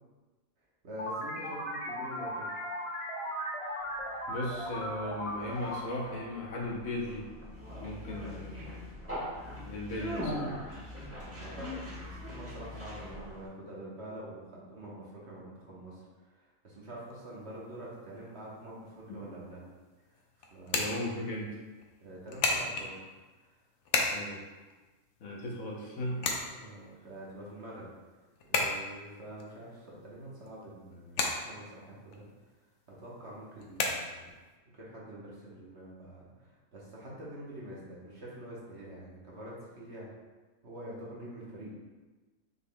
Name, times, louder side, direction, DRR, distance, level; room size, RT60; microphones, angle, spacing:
voice 1, 0.8-2.5 11.3-16.0 16.3-19.6 20.1-20.2 20.5-20.9 22.0-23.1 26.5-27.9 28.5-32.3 33.0-34.3 34.7-40.1 40.6-41.7, right 1 dB, 55° right, -5 dB, 1.4 m, -46 dB
sound 1, 1.0-7.2, equal, 40° left, 0.5 m, -38 dB
Conversation, 4.0-13.5, equal, 10° right, 1.1 m, -41 dB
voice 2, 4.3-7.3 7.8-8.8 9.7-10.4 19.1-19.2 20.7-21.6 24.1-24.4 25.2-26.3, left 1 dB, 90° left, -2 dB, 1.3 m, -37 dB
sound 2, 17.0-34.5, left 3 dB, 65° left, 0.9 m, -37 dB
6.0 x 3.6 x 2.3 m, 1.2 s
omnidirectional pair, 1.4 m